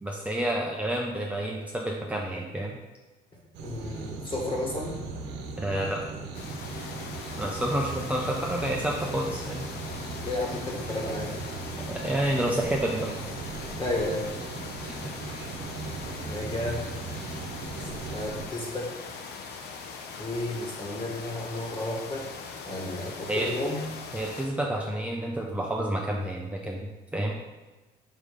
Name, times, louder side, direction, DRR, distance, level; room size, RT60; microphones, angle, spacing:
voice 1, 0.0-2.8 5.6-6.0 7.4-9.7 11.9-13.3 14.8-14.9 23.3-23.5 24.1-27.4, right 1 dB, 10° right, -2 dB, 0.7 m, -29 dB
voice 2, 3.3-5.0 10.2-11.4 13.8-14.3 16.3-16.8 17.8-18.9 20.2-22.3 22.7-23.8, left 2 dB, 30° left, -1 dB, 1.8 m, -32 dB
sound 1, 3.5-18.5, right 4 dB, 85° right, 1.0 m, -38 dB
sound 2, 6.3-24.5, left 5 dB, 75° left, 0.8 m, -41 dB
5.0 x 4.8 x 5.3 m, 1.2 s
cardioid pair, 110°, 17 cm